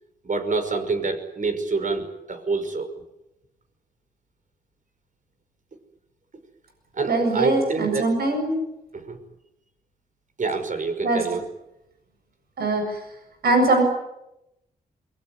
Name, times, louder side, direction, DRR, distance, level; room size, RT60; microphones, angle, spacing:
voice 1, 0.2-2.9 6.9-8.2 8.9-9.2 10.4-11.4, right 4 dB, 55° right, 8 dB, 5.6 m, -27 dB
voice 2, 7.1-8.5 11.0-11.2 12.6-13.0 13.4-13.8, right 2 dB, 80° right, 4 dB, 7.5 m, -21 dB
23.5 x 22.5 x 9.9 m, 0.89 s
cardioid pair, 50°, 16 cm